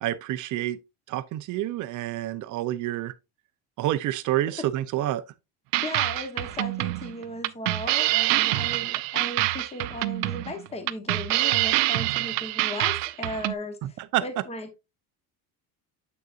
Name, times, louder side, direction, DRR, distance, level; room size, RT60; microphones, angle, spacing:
voice 1, 0.0-0.8 1.1-3.1 3.8-5.2 13.8-14.2, right 14 dB, 50° right, 0.6 m, -28 dB
sound 1, 5.7-13.5, right 19 dB, 90° right, 0.6 m, -26 dB
voice 2, 5.8-14.8, left 1 dB, 15° left, 1.0 m, -36 dB
7.5 x 6.6 x 2.5 m
cardioid pair, 170°, 41 cm